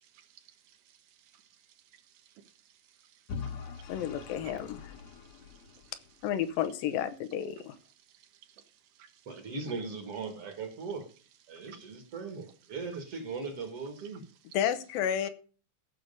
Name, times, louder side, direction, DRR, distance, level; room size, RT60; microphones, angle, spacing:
voice 1, 0.0-1.0 1.3-1.4 1.9-2.0 2.4-2.5 3.0-3.9 4.4-4.5 5.1-5.4 5.7-5.9 8.1-8.2 9.0-9.1 11.6-11.8, right 10 dB, 75° right, 2.7 m, -58 dB
Vehicle / Engine, 3.3-6.3, left 6 dB, 60° left, 2.1 m, -42 dB
voice 2, 3.9-4.9 6.2-7.8 14.5-15.3, left 9 dB, 85° left, 2.7 m, -31 dB
voice 3, 9.3-11.1 11.5-14.2, right 4 dB, 50° right, 2.2 m, -39 dB
15.0 x 6.5 x 5.3 m
omnidirectional pair, 4.0 m